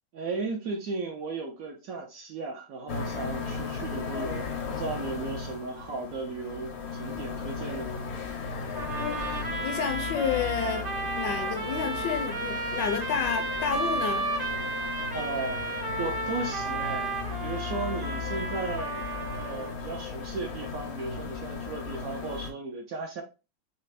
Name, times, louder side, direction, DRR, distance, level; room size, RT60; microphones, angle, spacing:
voice 1, 0.1-7.9 15.1-17.1 17.4-18.9 19.4-23.2, right 3 dB, 65° right, 0.9 m, -35 dB
sound 1, 2.9-22.5, left 5 dB, 60° left, 0.7 m, -36 dB
sound 2, 8.7-19.7, right 2 dB, 35° right, 0.3 m, -33 dB
voice 2, 9.0-10.9 11.2-14.3, left 7 dB, 75° left, 1.2 m, -30 dB
5.4 x 2.0 x 2.5 m
omnidirectional pair, 2.0 m